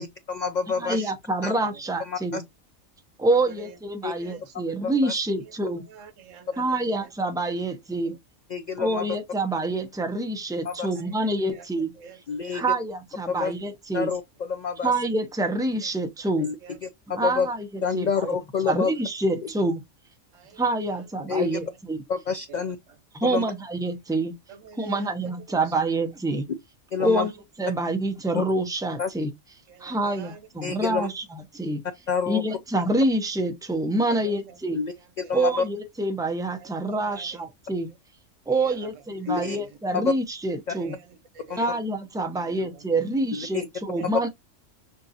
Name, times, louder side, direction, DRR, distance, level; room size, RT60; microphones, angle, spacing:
voice 1, 0.0-1.1 1.4-1.5 2.0-2.4 4.0-4.1 4.8-5.1 8.5-9.1 10.6-11.0 12.3-12.6 13.3-13.5 13.9-14.9 16.4-16.6 16.8-17.5 17.8-18.9 21.3-21.6 22.1-22.8 23.2-23.4 26.9-27.3 28.3-28.4 29.0-29.1 30.6-31.1 32.1-32.4 34.7-35.6 39.3-39.6 40.0-40.1 40.7-40.8 41.5-41.6 43.4-43.7 44.0-44.1, left 6 dB, 65° left, 0.4 m, -28 dB
voice 2, 0.8-2.4 3.2-5.8 6.6-8.1 8.8-11.9 12.5-14.1 14.8-16.5 17.1-17.7 17.9-18.3 18.6-19.8 20.6-22.0 23.1-24.3 24.8-26.5 27.0-27.3 27.6-29.3 29.8-31.2 31.5-31.8 32.3-34.8 35.3-37.9 38.5-40.9 41.6-44.3, right 2 dB, 5° right, 0.6 m, -26 dB
voice 3, 3.3-3.8 4.2-4.4 5.9-7.1 8.0-8.2 11.0-11.6 12.0-12.2 12.5-12.7 16.4-16.8 20.3-20.6 21.2-21.3 22.5-22.6 24.5-25.1 25.5-25.6 27.0-27.2 29.7-30.4 30.8-31.1 34.1-34.6 35.2-35.3 36.6-37.3 38.5-39.7 40.7-41.8 42.3-42.7 42.9-43.1 43.9-44.3, right 7 dB, 75° right, 1.2 m, -46 dB
6.5 x 2.6 x 2.8 m
omnidirectional pair, 1.3 m